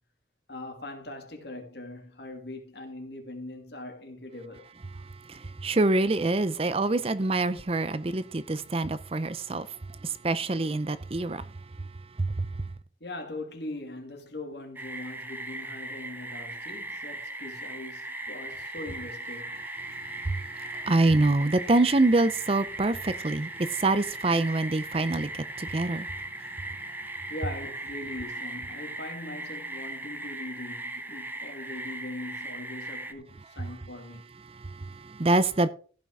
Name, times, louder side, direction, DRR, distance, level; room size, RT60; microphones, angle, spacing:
voice 1, 0.5-4.7 13.0-19.6 27.3-34.3, left 2 dB, 60° left, 2.7 m, -41 dB
voice 2, 4.9-11.9 12.1-12.6 19.9-26.6 34.4-35.7, right 2 dB, 30° right, 0.6 m, -26 dB
sound 1, 14.7-33.1, right 2 dB, 10° right, 0.9 m, -38 dB
15.0 x 5.9 x 4.9 m
head